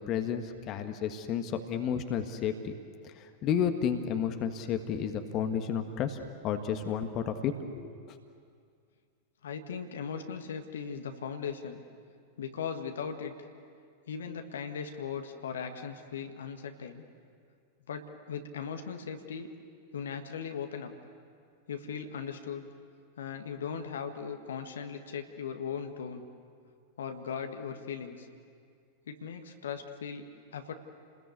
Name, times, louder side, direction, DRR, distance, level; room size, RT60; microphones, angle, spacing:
voice 1, 0.0-2.7 3.0-6.2 6.4-8.0, left 8 dB, 35° left, 6 dB, 1.6 m, -32 dB
voice 2, 9.4-11.8 12.4-13.3 14.1-17.0 17.9-19.5 19.9-20.9 21.7-22.6 23.2-26.2 27.0-28.3 29.1-30.7, left 6 dB, 65° left, 5 dB, 1.7 m, -38 dB
30.0 x 20.5 x 8.3 m, 2.2 s
figure-of-eight pair, 90°, 0 cm